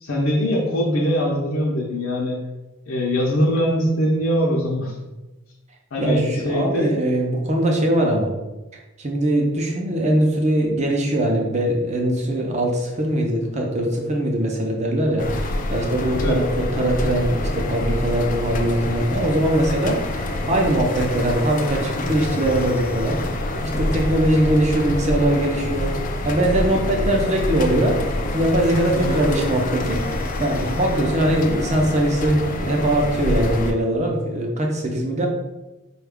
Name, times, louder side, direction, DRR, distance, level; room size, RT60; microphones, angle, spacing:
voice 1, 0.0-2.4 2.9-4.9 5.9-7.0 16.1-16.4 28.9-29.2, equal, 70° left, -3 dB, 0.6 m, -22 dB
voice 2, 6.0-8.3 9.0-28.0 28.3-35.3, right 1 dB, 30° right, 1 dB, 0.6 m, -21 dB
sound 1, 15.2-33.7, left 1 dB, 35° left, 0.3 m, -26 dB
4.5 x 2.3 x 3.4 m, 1.1 s
head